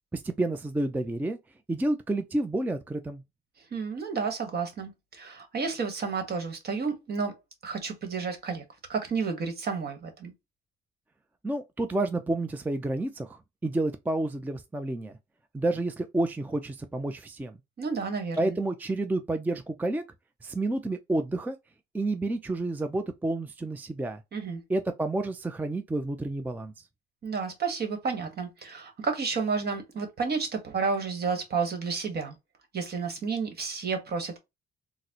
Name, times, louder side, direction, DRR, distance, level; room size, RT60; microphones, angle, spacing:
voice 1, 0.1-1.4 1.7-3.2 11.4-15.2 15.5-17.6 18.4-20.0 20.4-21.6 21.9-24.2 24.7-26.8, right 2 dB, 10° right, 0.4 m, -30 dB
voice 2, 3.7-7.3 7.6-8.6 8.9-10.3 17.8-18.6 24.3-24.6 27.2-32.3 32.7-34.4, right 5 dB, 55° right, 1.2 m, -31 dB
4.0 x 2.1 x 2.8 m
cardioid pair, 90°, 20 cm